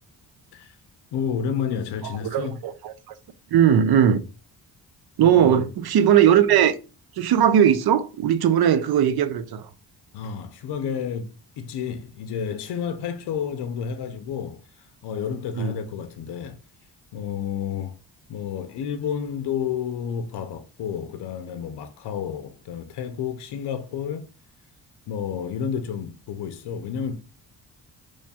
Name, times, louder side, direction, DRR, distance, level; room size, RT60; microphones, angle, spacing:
voice 1, 1.1-2.6 5.2-5.7 10.1-11.3 11.6-16.6 17.1-17.9 18.3-24.2 25.1-27.1, left 7 dB, 70° left, 0.6 m, -30 dB
voice 2, 2.2-3.1 3.5-4.2 5.2-6.8 7.2-9.7 15.6-15.7, right 9 dB, 65° right, 0.6 m, -19 dB
3.1 x 2.3 x 4.0 m
cardioid pair, 105°, 41 cm